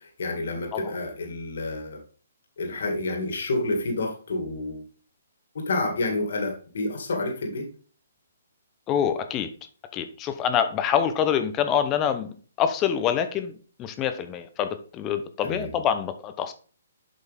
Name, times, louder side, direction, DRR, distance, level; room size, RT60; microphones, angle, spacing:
voice 1, 0.0-2.0 2.6-4.8 5.5-7.7 15.4-15.8, left 2 dB, 65° left, 2 dB, 2.3 m, -29 dB
voice 2, 8.9-9.5 9.9-13.5 13.8-16.5, left 8 dB, 20° left, 9 dB, 0.7 m, -26 dB
7.8 x 5.3 x 3.6 m, 0.38 s
hypercardioid pair, 145°, 0 cm